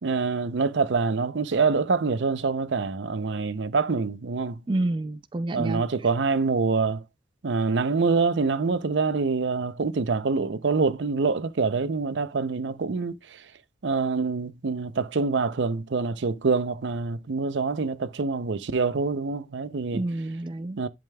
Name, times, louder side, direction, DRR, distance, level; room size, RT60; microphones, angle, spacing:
voice 1, 0.0-4.6 5.5-7.0 7.4-13.4 13.8-20.0 20.8-20.9, right 4 dB, 85° right, 0.6 m, -25 dB
voice 2, 4.7-5.8 19.9-20.9, right 2 dB, 25° right, 0.3 m, -29 dB
11.0 x 5.1 x 2.3 m
head